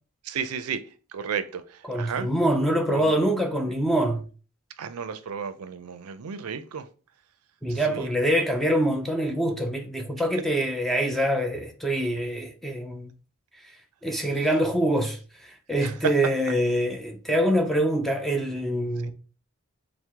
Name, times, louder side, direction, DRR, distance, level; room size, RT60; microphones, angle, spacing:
voice 1, 0.2-0.8 1.1-2.3 2.9-3.1 4.8-6.9 7.7-8.1 14.4-14.5 15.8-16.1 19.0-19.1, right 7 dB, 85° right, 0.4 m, -33 dB
voice 2, 1.9-4.3 7.6-13.1 14.0-19.1, right 1 dB, ahead, 0.4 m, -25 dB
4.5 x 2.1 x 3.4 m
head